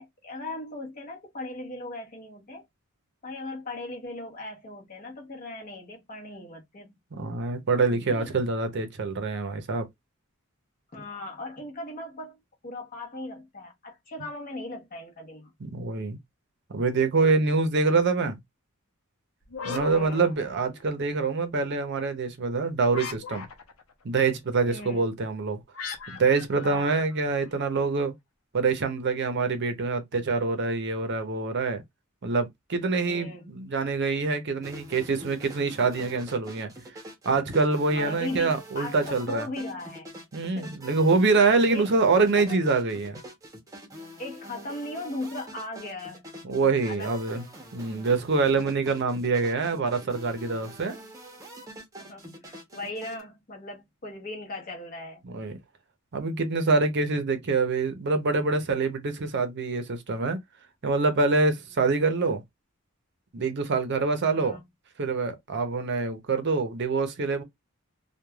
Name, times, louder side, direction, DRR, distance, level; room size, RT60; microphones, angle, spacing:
voice 1, 0.0-2.7 3.2-7.0 7.9-8.3 10.9-12.4 12.6-15.5 19.9-20.2 24.6-25.1 26.6-27.0 33.1-33.5 37.9-40.1 40.5-40.8 41.7-41.9 42.4-42.6 44.2-46.3 46.9-47.4 52.0-55.2 64.3-64.6, left 2 dB, 40° left, 0.9 m, -38 dB
voice 2, 7.1-9.9 15.7-16.2 16.7-18.4 19.6-23.4 24.0-25.6 26.1-28.1 28.5-31.8 32.2-36.7 37.2-39.5 40.3-43.2 46.4-47.4 47.7-51.0 55.3-55.6 56.1-60.4 60.8-62.4 63.3-64.6 65.0-67.4, right 4 dB, 55° right, 0.6 m, -25 dB
sound 1, 19.4-21.0 22.9-23.9 25.7-27.6, left 5 dB, 80° left, 0.7 m, -39 dB
sound 2, 34.6-53.2, equal, 15° right, 0.7 m, -45 dB
3.1 x 2.2 x 2.2 m
head